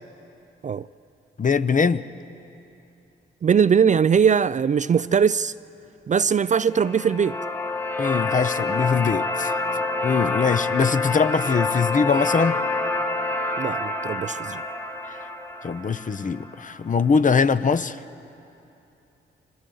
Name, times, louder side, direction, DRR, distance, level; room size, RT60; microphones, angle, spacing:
voice 1, 1.4-2.1 8.0-9.5 10.0-12.6 15.0-15.2 15.6-18.0, left 5 dB, 40° left, 0.7 m, -22 dB
voice 2, 3.4-5.5 6.1-7.4 13.6-14.6, right 7 dB, 35° right, 0.4 m, -20 dB
sound 1, 6.7-16.7, left 2 dB, 10° left, 1.2 m, -27 dB
27.0 x 25.5 x 3.9 m
cardioid pair, 55°, 21 cm